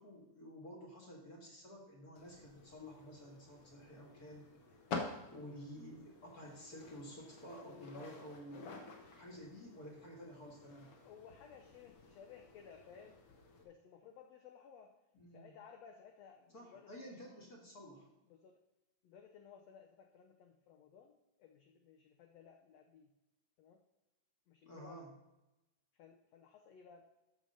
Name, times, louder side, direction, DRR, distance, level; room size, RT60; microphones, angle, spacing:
voice 1, 0.0-4.6 5.3-8.7 9.1-10.9 15.1-15.5 16.5-18.1 24.6-25.1, equal, 35° left, -1 dB, 1.9 m, -52 dB
sound 1, 2.2-13.6, left 3 dB, 55° left, 1.8 m, -50 dB
voice 2, 7.6-8.1 11.0-13.2 13.6-14.9 15.3-16.9 18.3-18.6 19.0-23.1 23.6-23.8 24.5-25.0 25.9-27.1, left 7 dB, 75° left, 4 dB, 1.5 m, -58 dB
13.0 x 5.0 x 5.5 m, 0.98 s
omnidirectional pair, 3.8 m